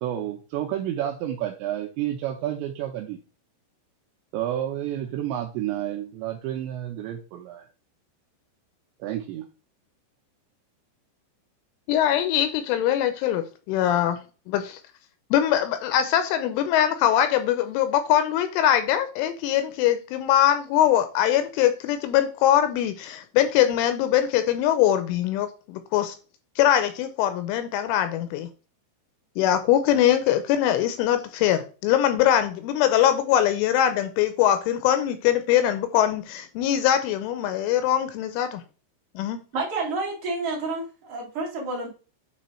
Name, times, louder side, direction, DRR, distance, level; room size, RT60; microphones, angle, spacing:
voice 1, 0.0-3.2 4.3-7.7 9.0-9.5, right 12 dB, 80° right, 2.7 m, -30 dB
voice 2, 11.9-14.8 15.3-26.2 26.6-28.5 29.4-38.6 39.2-39.4, left 11 dB, 85° left, 3.0 m, -22 dB
voice 3, 39.5-41.9, right 3 dB, 45° right, 2.0 m, -29 dB
9.3 x 3.3 x 4.2 m
omnidirectional pair, 5.8 m